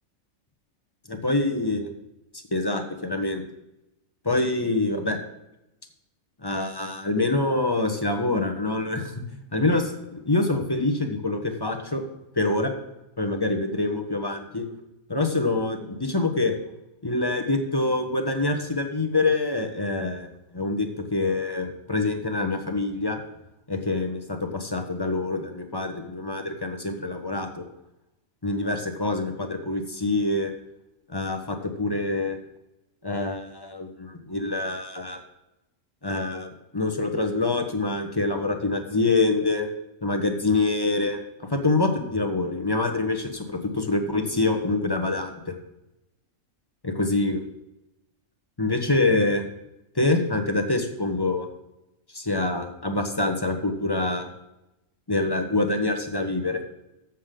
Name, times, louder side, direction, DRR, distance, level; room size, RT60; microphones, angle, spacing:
voice 1, 1.1-1.9 2.5-3.4 4.2-5.2 6.4-9.2 9.5-9.9 10.2-12.0 12.3-12.7 13.2-14.6 15.1-16.5 17.0-23.2 23.7-27.6 28.4-30.5 31.1-32.4 33.0-35.2 36.0-39.7 40.0-41.2 41.5-45.5 46.8-47.4 48.6-49.4 49.9-51.5 52.1-54.3 55.1-56.6, left 2 dB, 20° left, 5 dB, 1.1 m, -25 dB
13.5 x 7.4 x 3.8 m, 0.90 s
omnidirectional pair, 1.4 m